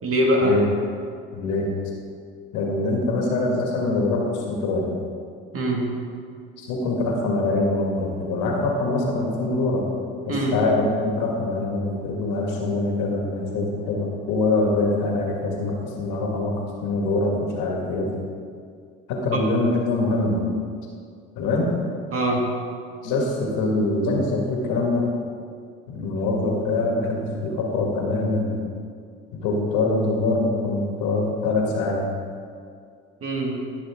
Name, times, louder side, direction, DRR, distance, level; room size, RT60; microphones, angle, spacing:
voice 1, 0.0-0.6 5.5-5.9 10.3-10.6 19.3-19.4 22.1-22.5 33.2-33.6, right 1 dB, 50° right, 0 dB, 2.1 m, -22 dB
voice 2, 1.3-1.7 2.5-4.9 6.6-9.8 10.2-16.5 16.8-18.1 19.1-20.4 21.4-21.7 23.0-25.0 25.9-28.5 29.4-32.0, left 2 dB, 80° left, -1 dB, 2.0 m, -24 dB
14.0 x 6.3 x 3.7 m, 2.2 s
supercardioid pair, 70°, 30 cm